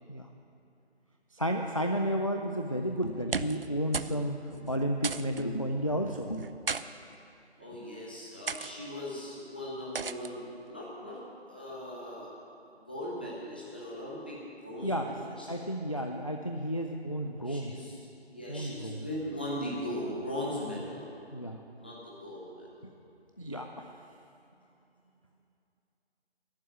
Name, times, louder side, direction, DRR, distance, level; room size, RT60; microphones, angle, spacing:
voice 1, 1.3-6.5 14.8-15.1 15.5-17.7 18.5-19.1 21.3-21.6 23.4-23.9, equal, 30° left, 3 dB, 0.5 m, -32 dB
sound 1, 3.1-3.7 3.9-4.2 4.5-4.6 5.0-5.4 6.4-6.8 7.6-7.8 8.5-8.7 9.9-10.3, right 5 dB, 60° right, 0.5 m, -34 dB
voice 2, 7.6-11.2 11.5-12.3 12.8-14.4 14.6-15.6 17.4-18.0 18.3-21.1 21.8-22.9, left 1 dB, 10° left, -6 dB, 0.9 m, -39 dB
11.0 x 8.8 x 9.8 m, 2.7 s
figure-of-eight pair, 160°, 33 cm